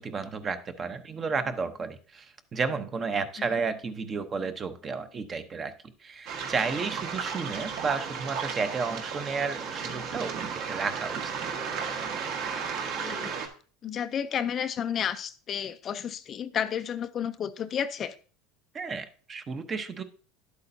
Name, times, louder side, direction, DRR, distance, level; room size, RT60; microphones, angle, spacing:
voice 1, 0.0-5.7 6.0-11.2 18.7-20.0, right 5 dB, 25° right, 0.7 m, -32 dB
Waves surf, 6.3-13.5, right 6 dB, 55° right, 1.6 m, -34 dB
voice 2, 13.0-13.3 13.8-18.2, left 8 dB, 30° left, 0.4 m, -31 dB
11.0 x 8.2 x 2.7 m
supercardioid pair, 140°, 0 cm